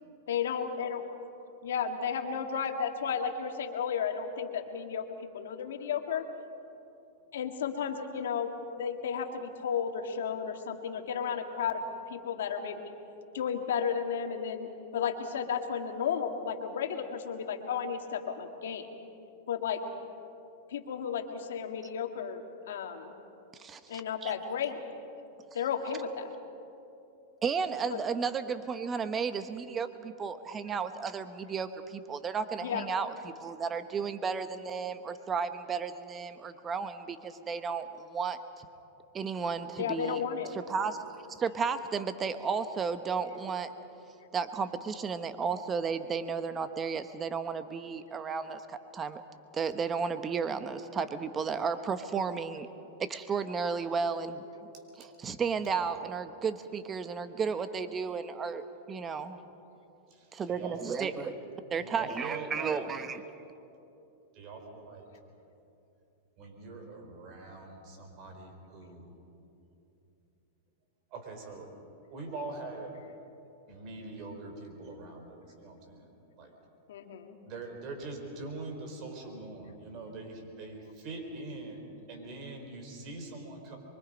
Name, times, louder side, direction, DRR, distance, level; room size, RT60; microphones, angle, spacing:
voice 1, 0.3-1.0 1.6-5.0 5.3-6.2 7.3-8.5 8.8-12.9 13.3-18.9 19.5-19.8 20.7-23.1 23.9-24.8 25.5-26.3 27.9-28.0 32.6-32.9 39.8-40.5 76.9-77.4, left 7 dB, 80° left, 5 dB, 1.9 m, -33 dB
voice 2, 23.6-23.9 24.2-24.3 27.4-38.7 39.1-40.2 40.5-43.7 44.3-49.2 49.5-52.7 53.0-54.5 55.0-59.4 60.3-61.3 61.7-63.2, right 5 dB, 20° right, 10 dB, 1.1 m, -33 dB
voice 3, 60.1-61.3 61.8-62.9 64.3-65.1 66.4-69.1 71.1-71.7 72.1-72.9 73.7-76.6 77.4-83.8, right 3 dB, 45° right, 3 dB, 4.6 m, -43 dB
24.0 x 23.5 x 5.3 m, 2.8 s
hypercardioid pair, 130°, 0 cm